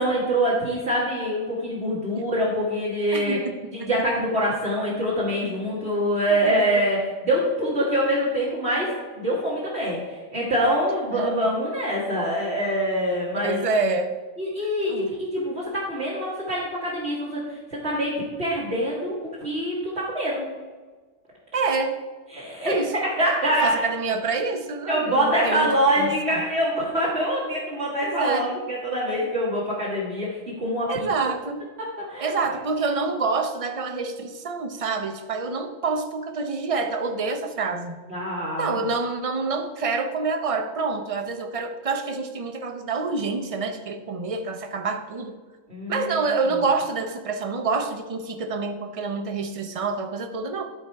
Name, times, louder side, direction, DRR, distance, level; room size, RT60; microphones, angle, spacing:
voice 1, 0.0-3.4 3.7-13.7 14.4-20.4 22.3-23.9 24.9-31.1 32.1-32.6 38.1-38.9 45.7-46.2, equal, 50° right, -6 dB, 2.1 m, -25 dB
voice 2, 3.1-3.5 3.8-3.9 6.7-6.8 11.1-11.5 13.4-14.2 14.9-15.1 21.5-21.9 22.6-22.9 23.6-25.7 26.0-26.1 28.0-28.6 30.9-31.6 32.2-38.0 38.6-45.3 45.9-50.6, right 4 dB, 35° right, 6 dB, 0.6 m, -27 dB
12.0 x 4.5 x 4.6 m, 1.4 s
omnidirectional pair, 1.4 m